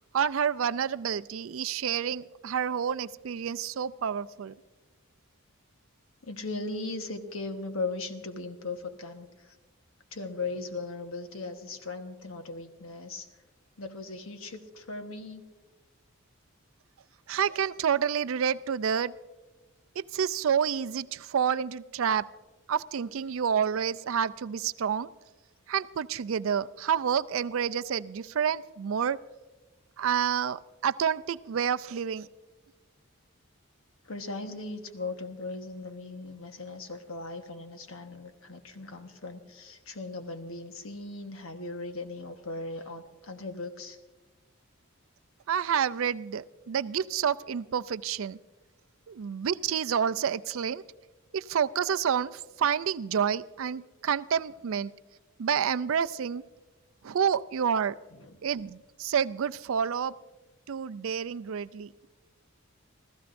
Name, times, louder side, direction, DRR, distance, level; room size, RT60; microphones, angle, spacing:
voice 1, 0.1-4.5 17.3-19.1 20.0-22.3 22.7-25.1 25.7-29.2 30.0-32.3 45.5-48.4 49.1-50.8 51.3-54.9 55.4-56.4 57.0-58.0 58.4-60.1 60.7-61.9, right 7 dB, 65° right, 14 dB, 0.4 m, -29 dB
voice 2, 6.2-9.5 10.1-13.3 13.8-15.4 34.0-44.0 58.2-58.3, left 3 dB, 70° left, 6 dB, 1.2 m, -38 dB
28.0 x 15.0 x 2.6 m, 1.2 s
head